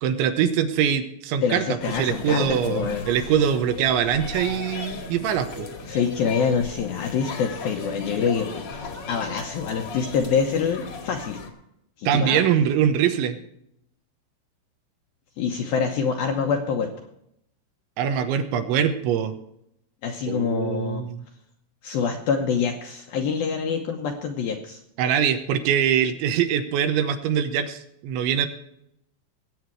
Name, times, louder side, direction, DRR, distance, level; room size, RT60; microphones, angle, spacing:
voice 1, 0.0-1.7 2.0-5.7 12.1-13.4 18.0-19.3 20.3-21.3 25.0-28.5, right 8 dB, 80° right, 8 dB, 3.3 m, -23 dB
voice 2, 1.4-3.0 5.9-8.6 9.1-11.4 12.0-12.4 15.4-17.1 20.0-21.0 21.8-24.8, left 6 dB, 75° left, 3 dB, 2.3 m, -25 dB
sound 1, 1.8-11.5, left 4 dB, 55° left, 1.7 m, -37 dB
20.5 x 8.7 x 4.7 m, 0.78 s
omnidirectional pair, 5.5 m